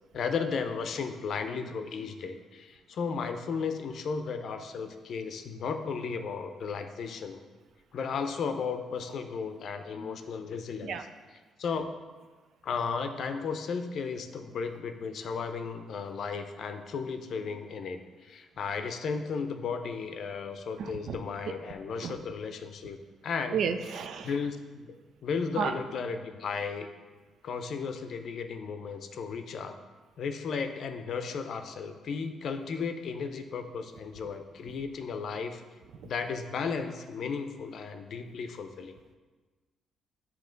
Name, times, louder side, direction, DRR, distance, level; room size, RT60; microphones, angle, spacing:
voice 1, 0.1-7.4 7.9-11.0 11.6-11.9 12.6-23.0 23.2-23.6 24.2-24.9 25.2-26.9 27.4-29.7 30.2-35.6 36.0-39.2, left 5 dB, 65° left, 7 dB, 0.5 m, -34 dB
voice 2, 20.8-21.2 21.5-21.6 22.0-22.2 23.5-24.3 25.6-25.7 36.0-36.1, right 7 dB, 70° right, 9 dB, 0.4 m, -32 dB
7.8 x 2.9 x 5.1 m, 1.3 s
cardioid pair, 90°, 0 cm